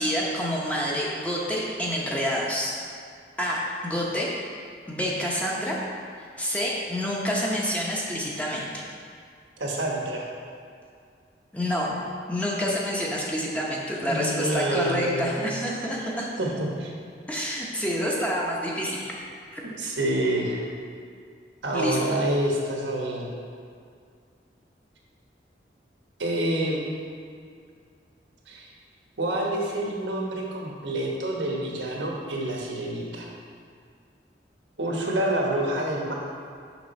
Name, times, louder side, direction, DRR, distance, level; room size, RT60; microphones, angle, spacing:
voice 1, 0.0-2.7 3.4-4.3 4.9-5.8 6.4-8.8 11.5-11.9 12.3-16.3 17.3-19.1 19.5-19.6 21.7-22.0, equal, 10° left, -4 dB, 0.8 m, -28 dB
voice 2, 9.6-10.3 14.0-15.5 16.0-16.1 16.4-16.9 17.4-17.7 18.7-18.8 19.6-20.7 21.6-23.3 26.2-26.8 28.5-28.7 29.2-33.3 34.8-36.1, right 1 dB, 90° right, -2 dB, 1.3 m, -28 dB
6.0 x 6.0 x 4.3 m, 2.2 s
head